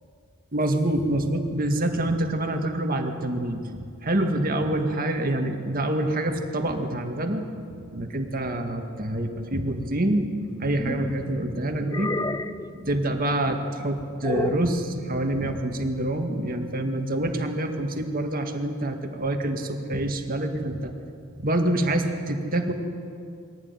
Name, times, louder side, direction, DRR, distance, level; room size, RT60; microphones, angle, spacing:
voice 1, 0.5-3.6 4.0-10.3 10.6-12.2 12.7-20.9 21.4-22.7, right 1 dB, 40° right, 4 dB, 2.0 m, -26 dB
sound 1, 10.4-11.2 11.9-12.7 14.2-14.7, left 2 dB, 15° left, 0.5 m, -30 dB
22.0 x 16.0 x 9.7 m, 2.4 s
head